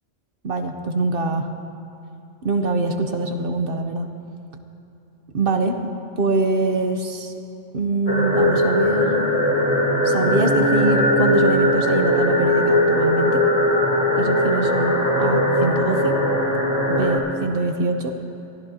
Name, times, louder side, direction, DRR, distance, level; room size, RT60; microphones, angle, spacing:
voice 1, 0.4-1.5 2.4-4.1 5.3-5.8 6.2-7.3 7.7-9.3 10.0-13.4 14.2-16.1 16.9-18.1, right 3 dB, 50° right, 6 dB, 0.9 m, -23 dB
sound 1, 8.1-17.2, left 1 dB, 30° left, 2.7 m, -19 dB
22.5 x 14.0 x 2.8 m, 2.8 s
omnidirectional pair, 1.3 m